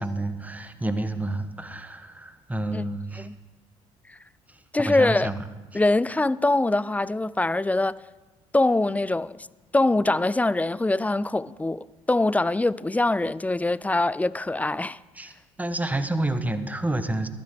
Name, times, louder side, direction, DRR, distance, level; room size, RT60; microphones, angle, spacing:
voice 1, 0.0-3.3 4.5-5.4 15.1-17.3, right 1 dB, 10° right, 1.2 m, -29 dB
voice 2, 4.7-5.3 5.7-7.9 8.5-9.4 9.7-15.0, left 2 dB, 10° left, 0.3 m, -23 dB
22.5 x 7.9 x 3.7 m
figure-of-eight pair, 50°, 17 cm